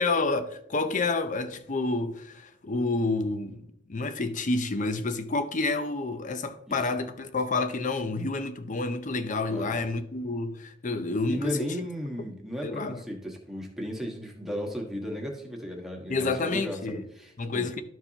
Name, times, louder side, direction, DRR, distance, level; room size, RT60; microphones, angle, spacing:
voice 1, 0.0-11.9 12.6-13.0 16.1-17.0 17.4-17.8, left 3 dB, 45° left, 0.7 m, -29 dB
voice 2, 9.5-9.8 11.3-17.7, equal, ahead, 1.5 m, -35 dB
12.5 x 4.7 x 2.9 m
head